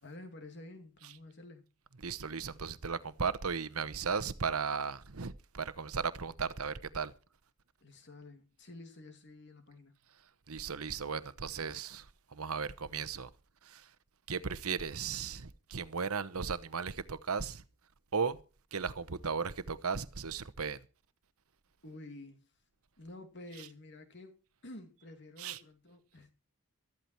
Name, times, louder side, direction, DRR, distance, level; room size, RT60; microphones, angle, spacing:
voice 1, 0.0-1.6 7.8-9.9 21.8-22.5 23.0-24.4 24.6-26.3, left 2 dB, 55° left, 2.7 m, -50 dB
voice 2, 2.0-7.1 10.5-13.3 13.6-13.9 14.3-17.6 18.1-18.4 18.7-20.8 25.4-25.6, right 5 dB, 80° right, 1.0 m, -36 dB
13.5 x 13.5 x 4.6 m
head